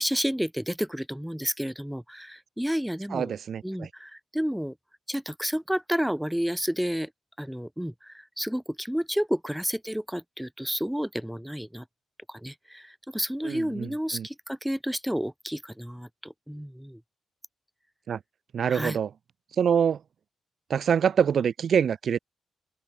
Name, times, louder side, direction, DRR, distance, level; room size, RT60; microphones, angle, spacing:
voice 1, 0.0-3.3 3.6-4.7 5.1-7.1 7.4-11.8 12.3-17.0 18.7-19.0, equal, 5° right, 7.1 m, -31 dB
voice 2, 3.1-3.9 13.4-14.3 18.1-18.2 18.5-19.1 19.6-20.0 20.7-22.2, right 7 dB, 60° right, 2.9 m, -25 dB
open air
hypercardioid pair, 45°, 0 cm